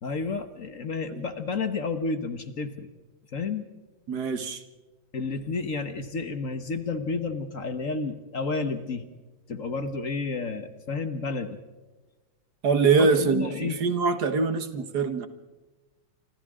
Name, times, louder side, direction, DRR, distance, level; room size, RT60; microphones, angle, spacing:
voice 1, 0.0-2.9 3.3-3.7 5.1-9.1 9.5-11.6 13.0-13.8, left 4 dB, 45° left, 9 dB, 1.5 m, -31 dB
voice 2, 4.1-4.6 12.6-15.3, right 5 dB, 60° right, 10 dB, 1.8 m, -24 dB
28.5 x 25.5 x 3.7 m, 1.2 s
omnidirectional pair, 2.0 m